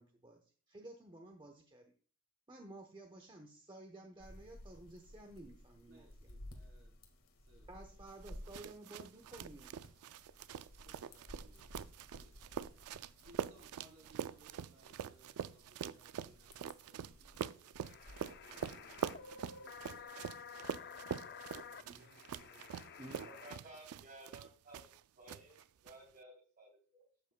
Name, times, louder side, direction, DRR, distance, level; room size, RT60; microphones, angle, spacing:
voice 1, 0.0-1.9 2.5-6.3 7.7-9.8 21.8-22.1 23.0-23.3, right 1 dB, 20° right, 4 dB, 0.8 m, -54 dB
sound 1, 4.2-20.0, left 1 dB, 70° left, 1.7 m, -57 dB
voice 2, 5.9-7.0 7.4-8.0 8.4-8.5 10.7-12.9 13.2-23.1, right 1 dB, 70° right, -1 dB, 3.6 m, -67 dB
sound 2, 8.2-25.0 25.3-25.9, right 8 dB, 90° right, 0.4 m, -45 dB
sound 3, 17.8-23.6, left 6 dB, 45° left, 0.4 m, -52 dB
voice 3, 23.2-24.9 25.2-27.3, right 1 dB, 40° right, 0 dB, 3.5 m, -56 dB
12.0 x 8.3 x 2.2 m, 0.41 s
head